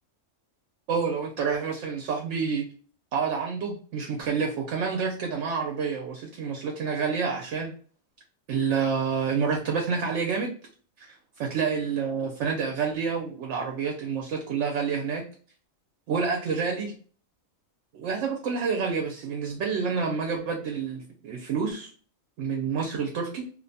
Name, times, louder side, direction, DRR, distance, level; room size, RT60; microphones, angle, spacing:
voice 1, 0.9-2.7 3.1-7.7 8.5-10.5 11.0-15.3 16.1-17.0 17.9-21.9 22.4-23.5, right 5 dB, 65° right, 2 dB, 0.8 m, -28 dB
2.5 x 2.2 x 2.6 m, 0.43 s
omnidirectional pair, 1.4 m